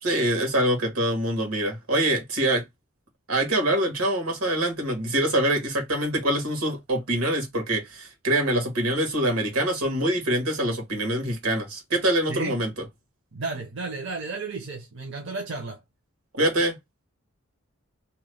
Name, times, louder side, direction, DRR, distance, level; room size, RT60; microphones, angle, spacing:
voice 1, 0.0-2.6 3.3-12.7 16.4-16.7, right 1 dB, 85° right, 1.4 m, -24 dB
voice 2, 12.3-12.6 13.3-15.8, right 3 dB, 55° right, 0.6 m, -33 dB
2.9 x 2.1 x 3.2 m
head